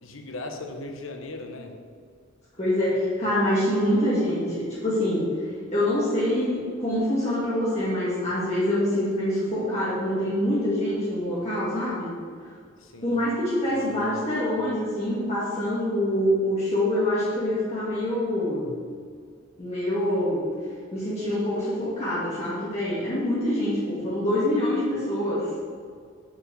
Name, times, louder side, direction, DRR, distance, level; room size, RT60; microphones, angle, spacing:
voice 1, 0.0-1.7 12.8-13.2 13.7-14.2 14.6-14.7, left 2 dB, 85° left, 4 dB, 1.4 m, -38 dB
voice 2, 2.6-12.1 13.0-18.7 19.6-20.5 20.9-25.5, left 1 dB, 35° left, -9 dB, 2.5 m, -25 dB
9.8 x 6.8 x 6.4 m, 2.1 s
head